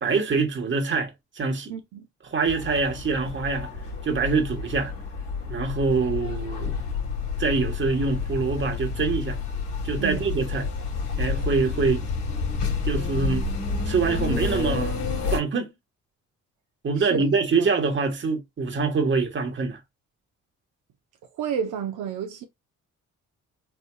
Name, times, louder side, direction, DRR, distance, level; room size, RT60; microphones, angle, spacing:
voice 1, 0.0-1.7 2.3-3.7 4.0-4.9 5.5-6.7 7.4-9.4 9.8-10.7 11.2-12.1 12.8-13.4 13.8-15.0 15.3-15.7 16.8-19.8, right 4 dB, 40° right, 1.3 m, -25 dB
voice 2, 1.7-2.1 10.0-10.3 17.0-17.2 17.5-17.7 21.3-22.4, right 7 dB, 80° right, 0.8 m, -30 dB
sound 1, 2.5-15.4, left 5 dB, 85° left, 2.3 m, -29 dB
4.5 x 2.8 x 2.2 m
cardioid pair, 90°, 30 cm